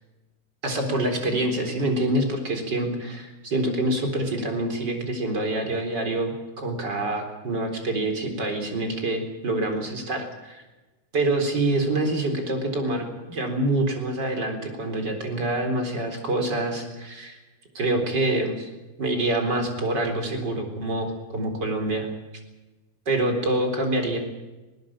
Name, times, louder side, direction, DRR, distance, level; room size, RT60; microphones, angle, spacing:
voice 1, 0.6-10.6 11.1-17.4 17.7-18.7 19.0-22.1 23.1-24.2, right 1 dB, 35° right, 4 dB, 4.3 m, -26 dB
20.0 x 19.5 x 8.8 m, 1.1 s
omnidirectional pair, 3.4 m